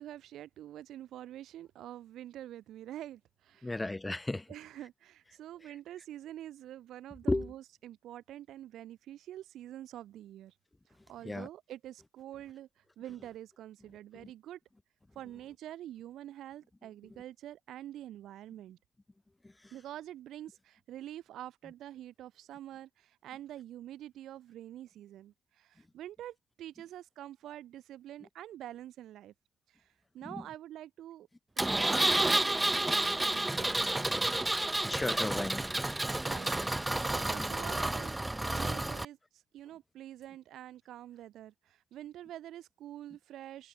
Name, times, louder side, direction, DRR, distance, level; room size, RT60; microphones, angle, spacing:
voice 1, 0.0-3.7 4.5-10.6 10.9-14.6 15.1-18.8 19.7-29.3 29.7-31.3 31.6-33.7 36.3-36.6 37.0-38.2 38.5-43.7, right 12 dB, 85° right, 2.6 m, -46 dB
voice 2, 3.6-4.5 7.3-7.5 11.2-11.5 14.1-14.3 19.4-19.7 30.2-30.4 34.8-35.7, left 2 dB, 15° left, 7.7 m, -34 dB
Engine, 31.6-39.0, right 2 dB, 15° right, 0.4 m, -30 dB
cardioid pair, 65°, 0 cm